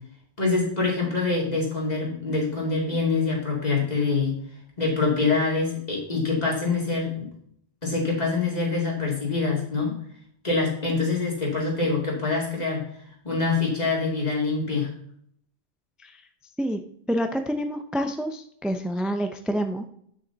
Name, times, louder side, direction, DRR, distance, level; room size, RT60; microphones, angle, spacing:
voice 1, 0.4-4.4 4.8-7.3 7.8-10.0 10.4-12.8 13.2-14.9, left 4 dB, 40° left, -3 dB, 2.7 m, -25 dB
voice 2, 17.1-19.9, equal, ahead, 6 dB, 0.4 m, -27 dB
8.9 x 6.4 x 4.0 m, 0.68 s
omnidirectional pair, 1.0 m